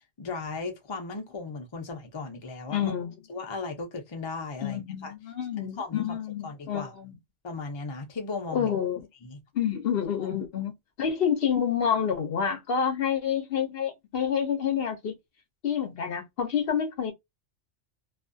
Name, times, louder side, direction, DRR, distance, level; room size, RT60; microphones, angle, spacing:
voice 1, 0.2-2.9 3.3-5.1 5.6-6.2 6.4-6.9 7.4-8.7 9.2-9.4, left 4 dB, 35° left, 0.4 m, -36 dB
voice 2, 2.7-3.1 4.6-7.1 8.5-9.0 9.5-10.7 11.0-15.2 15.6-17.1, left 8 dB, 60° left, 0.8 m, -28 dB
2.4 x 2.3 x 2.5 m
omnidirectional pair, 1.2 m